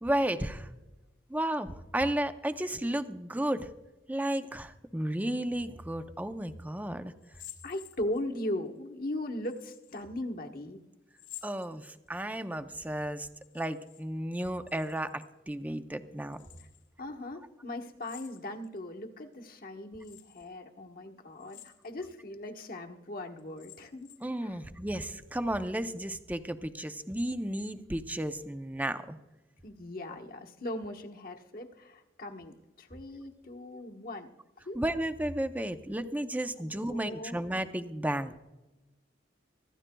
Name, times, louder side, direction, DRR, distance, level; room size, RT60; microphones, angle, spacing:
voice 1, 0.0-0.7 1.3-3.7 4.1-7.1 11.4-13.3 13.5-16.4 24.2-29.2 34.7-38.4, right 1 dB, 10° right, 9 dB, 0.6 m, -33 dB
sound 1, 7.2-8.4 9.4-10.0 11.1-12.3 13.3-14.0 14.3-15.3 16.3-16.9 18.0-18.8 19.3-19.4 20.0-20.5 21.3-22.1 22.6-22.7 23.4-24.4, left 13 dB, 90° left, 3.0 m, -52 dB
voice 2, 7.6-10.8 17.0-24.1 24.4-24.6 29.6-34.3 34.6-34.8 36.6-37.4, left 1 dB, 50° left, 3 dB, 1.2 m, -39 dB
25.0 x 14.0 x 2.3 m, 1.1 s
head